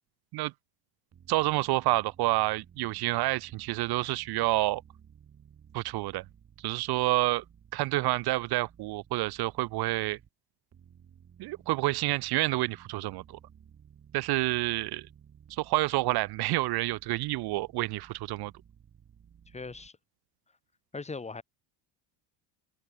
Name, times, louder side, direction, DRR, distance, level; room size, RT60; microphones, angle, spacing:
sound 1, 1.1-10.3 10.7-19.9, right 8 dB, 35° right, 7.8 m, -56 dB
voice 1, 1.3-4.8 5.7-6.2 6.6-7.4 7.7-10.2 11.4-13.4 14.1-15.1 15.5-18.5, right 19 dB, 60° right, 0.9 m, -28 dB
voice 2, 19.5-20.0 20.9-21.4, left 4 dB, 15° left, 2.5 m, -39 dB
open air
cardioid pair, 145°, 43 cm